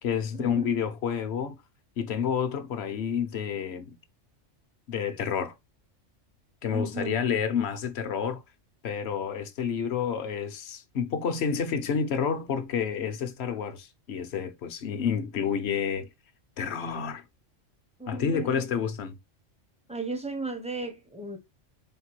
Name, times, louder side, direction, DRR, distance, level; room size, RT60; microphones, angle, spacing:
voice 1, 0.0-1.6 2.0-4.0 4.9-5.5 6.6-8.4 8.8-16.1 16.6-17.2 18.1-19.2, left 7 dB, 65° left, 0.9 m, -29 dB
voice 2, 6.7-7.2 18.0-18.6 19.9-21.4, right 2 dB, 10° right, 0.5 m, -35 dB
3.9 x 3.6 x 3.0 m
omnidirectional pair, 1.3 m